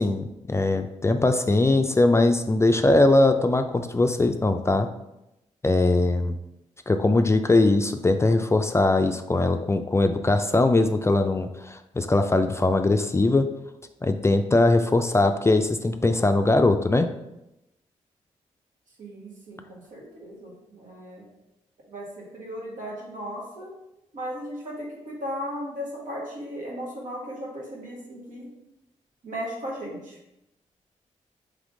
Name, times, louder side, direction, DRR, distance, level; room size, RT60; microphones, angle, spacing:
voice 1, 0.0-4.9 5.6-6.3 6.9-13.5 14.0-17.1, left 2 dB, 20° left, 7 dB, 0.3 m, -21 dB
voice 2, 19.0-21.3 21.9-23.7 24.1-28.5 29.2-30.2, equal, 70° right, -4 dB, 1.5 m, -36 dB
3.5 x 3.4 x 3.7 m, 0.89 s
cardioid pair, 55°, 14 cm